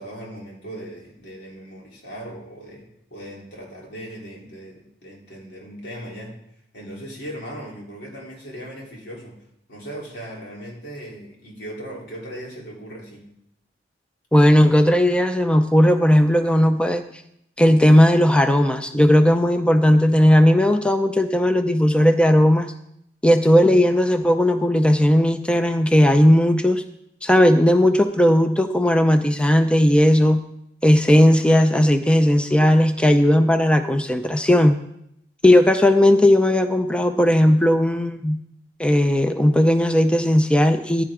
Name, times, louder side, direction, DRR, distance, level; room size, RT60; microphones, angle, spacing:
voice 1, 0.0-2.8 3.1-6.4 6.7-9.4 9.7-13.3, right 1 dB, 85° left, -2 dB, 3.5 m, -38 dB
voice 2, 14.3-17.0 17.6-22.7 23.2-26.8 27.2-30.4 30.8-34.7 35.4-38.4 38.8-41.0, left 1 dB, 5° left, 7 dB, 0.5 m, -16 dB
15.0 x 10.0 x 3.6 m, 0.76 s
head